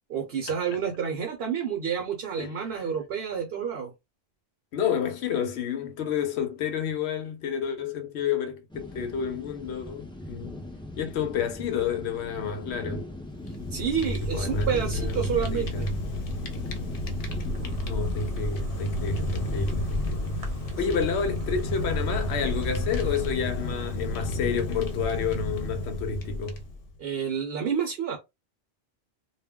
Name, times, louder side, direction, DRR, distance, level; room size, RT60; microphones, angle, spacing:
voice 1, 0.1-3.9 13.7-15.9 17.6-18.0 27.0-28.2, right 7 dB, 70° right, 0.9 m, -29 dB
voice 2, 4.7-10.6 11.0-13.1 14.0-15.9 17.8-20.3 20.8-26.6, left 7 dB, 85° left, 0.9 m, -30 dB
sound 1, 8.7-19.1, left 1 dB, 5° left, 0.5 m, -41 dB
Fire, 13.3-26.9, left 1 dB, 60° left, 0.9 m, -31 dB
Insect, 17.2-23.3, equal, 40° right, 0.7 m, -39 dB
2.3 x 2.1 x 3.5 m
omnidirectional pair, 1.1 m